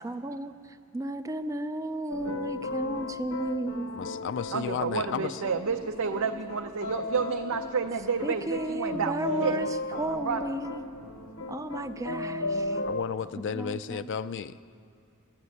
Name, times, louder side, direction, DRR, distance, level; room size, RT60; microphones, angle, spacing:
voice 1, 0.0-0.5 0.9-3.9 8.2-9.7 10.0-10.8 11.5-12.8 13.5-14.1, right 1 dB, 15° right, 11 dB, 0.4 m, -33 dB
sound 1, 2.1-13.0, left 2 dB, 70° left, 0.8 m, -35 dB
voice 2, 3.9-5.4 12.8-14.6, left 7 dB, 55° left, 12 dB, 0.4 m, -33 dB
voice 3, 4.5-9.1 9.4-9.6 9.9-10.6, right 5 dB, 75° right, 5 dB, 0.5 m, -30 dB
13.0 x 9.5 x 9.6 m, 2.5 s
head